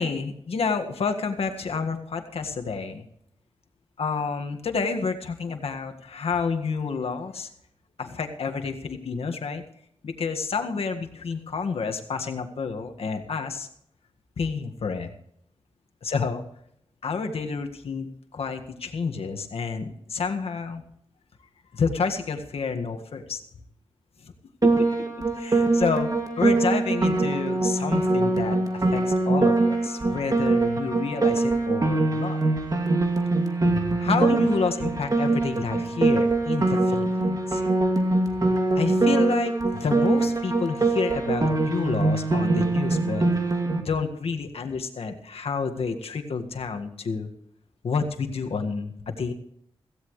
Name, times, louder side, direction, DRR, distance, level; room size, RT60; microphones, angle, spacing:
voice 1, 0.0-3.1 4.0-7.5 8.0-9.6 10.0-13.7 14.4-15.1 16.0-16.4 17.0-18.1 18.3-20.8 21.7-23.4 24.2-24.3 24.6-24.9 25.3-26.1 26.4-32.4 33.7-37.6 38.8-43.2 43.8-47.3 47.8-49.3, left 5 dB, 80° left, 5 dB, 1.8 m, -29 dB
Piano, 24.6-43.8, right 2 dB, 35° right, 2.4 m, -23 dB
17.0 x 16.0 x 3.2 m, 0.71 s
wide cardioid pair, 100°, 10 cm